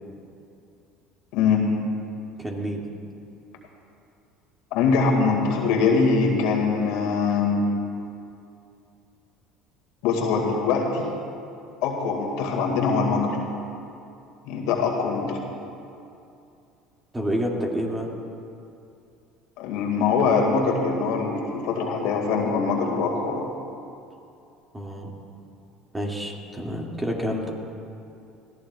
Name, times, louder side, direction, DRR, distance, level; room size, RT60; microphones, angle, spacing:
voice 1, 1.3-1.7 4.7-7.6 10.0-11.0 11.8-13.4 14.5-15.4 19.6-23.5, left 5 dB, 70° left, 1 dB, 2.0 m, -23 dB
voice 2, 2.4-2.8 17.1-18.1 24.7-25.1 25.9-27.5, equal, 15° right, -1 dB, 2.2 m, -28 dB
20.0 x 14.5 x 2.4 m, 2.6 s
hypercardioid pair, 75°, 0 cm